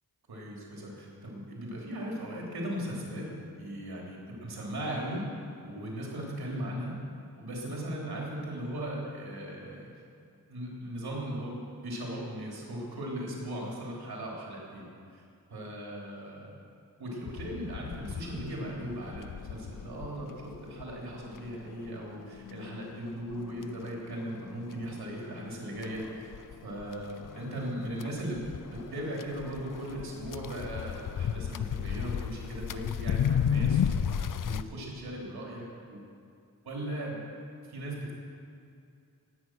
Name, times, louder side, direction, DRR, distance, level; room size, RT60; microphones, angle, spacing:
voice 1, 0.3-3.3 3.5-5.2 5.6-7.0 7.4-9.9 10.5-14.9 15.1-15.2 15.5-16.6 17.0-26.3 26.6-28.4 28.7-36.0 36.6-37.2 37.7-38.1, right 1 dB, 85° right, -3 dB, 3.3 m, -38 dB
sound 1, 17.3-34.6, left 8 dB, 55° left, 0.6 m, -35 dB
19.5 x 9.0 x 6.2 m, 2.5 s
wide cardioid pair, 80°, 37 cm